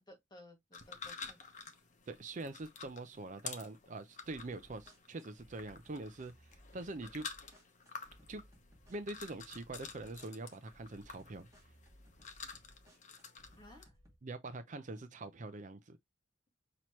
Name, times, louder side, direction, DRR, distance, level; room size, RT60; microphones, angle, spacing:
voice 1, 0.1-1.8 13.5-14.0, left 1 dB, 25° left, 1.9 m, -58 dB
sound 1, 0.7-13.8, left 5 dB, 40° left, 0.9 m, -51 dB
voice 2, 2.1-7.2 8.3-8.4 8.9-11.5 14.2-16.0, right 2 dB, 40° right, 0.5 m, -44 dB
sound 2, 4.2-14.2, equal, 15° right, 1.8 m, -63 dB
5.9 x 2.9 x 3.0 m
head